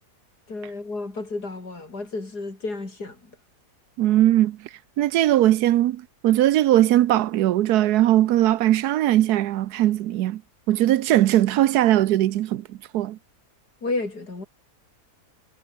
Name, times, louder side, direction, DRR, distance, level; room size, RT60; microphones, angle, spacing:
voice 1, 0.5-3.2 13.8-14.4, left 3 dB, 75° left, 5.4 m, -31 dB
voice 2, 4.0-4.6 5.0-10.4 10.7-13.2, right 13 dB, 80° right, 1.2 m, -20 dB
omnidirectional pair, 1.7 m